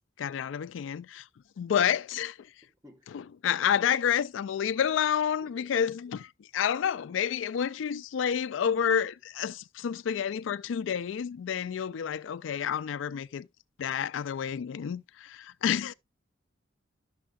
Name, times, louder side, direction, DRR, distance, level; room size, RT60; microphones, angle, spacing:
voice 1, 0.2-1.2 1.6-2.4 3.1-6.3 6.5-13.5 13.8-15.9, left 8 dB, 90° left, 0.3 m, -29 dB
voice 2, 2.6-3.2 5.4-5.7, equal, 20° right, 1.2 m, -55 dB
11.5 x 6.5 x 2.3 m
head